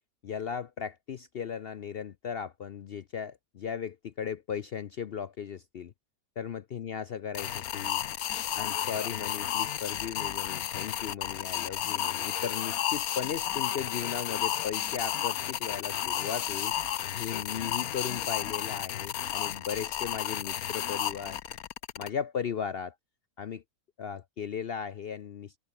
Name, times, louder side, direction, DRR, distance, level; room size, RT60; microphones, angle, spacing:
voice 1, 0.2-5.9 6.4-8.0 8.5-16.7 17.1-21.4 22.0-22.9 23.4-23.6 24.0-25.6, left 7 dB, 55° left, 0.7 m, -37 dB
sound 1, 7.3-22.1, left 11 dB, 75° left, 1.3 m, -32 dB
omnidirectional pair, 1.5 m